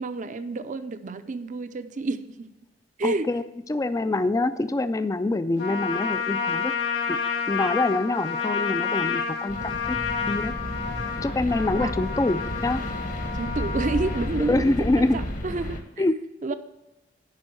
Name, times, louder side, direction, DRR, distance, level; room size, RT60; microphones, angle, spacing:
voice 1, 0.0-2.5 3.0-3.3 11.7-11.9 13.3-15.8 16.4-16.5, right 3 dB, 45° right, 10 dB, 0.5 m, -29 dB
voice 2, 3.0-3.4 3.7-6.7 7.1-7.2 7.5-10.0 10.3-10.5 11.2-12.8 14.5-15.2 16.0-16.1, left 2 dB, 20° left, 11 dB, 0.3 m, -25 dB
Trumpet, 5.6-14.3, left 6 dB, 75° left, 1.9 m, -29 dB
sound 1, 9.5-15.8, left 1 dB, 45° left, 1.1 m, -32 dB
10.5 x 4.5 x 6.2 m, 1.0 s
head